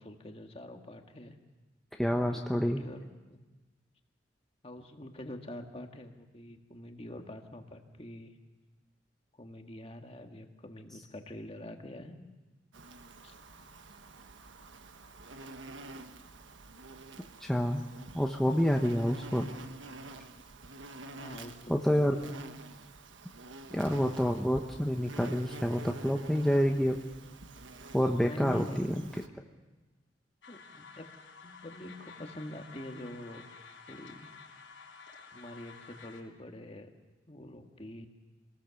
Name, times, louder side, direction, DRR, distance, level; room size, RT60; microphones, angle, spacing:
voice 1, 0.0-1.4 2.1-3.4 4.6-8.3 9.4-12.3 13.2-13.3 21.2-22.5 28.2-28.9 30.5-31.1 31.4-33.4 33.9-34.3 35.3-36.9 37.3-38.1, left 1 dB, 30° left, 4 dB, 1.7 m, -45 dB
voice 2, 2.0-2.8 17.4-17.8 18.1-19.5 21.7-22.2 23.7-27.0 27.9-29.0, equal, ahead, 1 dB, 0.9 m, -28 dB
Insect, 12.7-29.3, right 2 dB, 90° right, 1.3 m, -48 dB
sound 1, 30.4-36.2, left 5 dB, 85° left, 4.7 m, -52 dB
25.5 x 19.0 x 7.1 m, 1.2 s
head